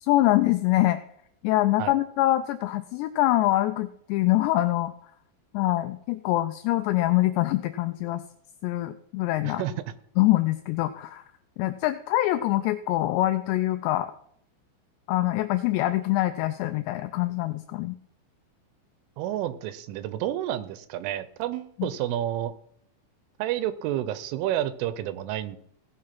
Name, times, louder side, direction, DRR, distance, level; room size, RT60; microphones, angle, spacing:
voice 1, 0.0-1.0 1.4-4.9 5.5-8.2 8.6-9.6 10.2-11.2 11.6-14.1 15.1-18.0 21.8-21.9, left 16 dB, 85° left, 10 dB, 2.5 m, -24 dB
voice 2, 19.2-22.5 23.4-25.6, right 12 dB, 90° right, 14 dB, 3.3 m, -30 dB
17.0 x 6.6 x 5.8 m, 0.68 s
omnidirectional pair, 5.5 m